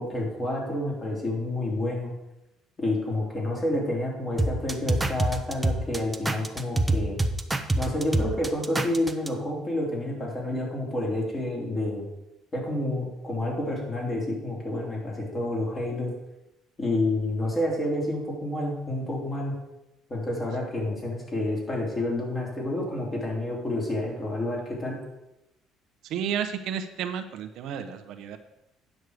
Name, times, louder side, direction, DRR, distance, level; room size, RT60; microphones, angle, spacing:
voice 1, 0.0-2.1 2.8-7.2 7.8-12.1 12.5-16.1 16.8-19.5 20.1-25.0, left 1 dB, 25° left, -2 dB, 3.1 m, -29 dB
sound 1, 4.4-9.3, right 2 dB, 10° right, 0.6 m, -26 dB
voice 2, 26.0-28.4, right 8 dB, 70° right, 8 dB, 0.7 m, -32 dB
9.4 x 6.4 x 4.8 m, 0.92 s
cardioid pair, 115°, 0 cm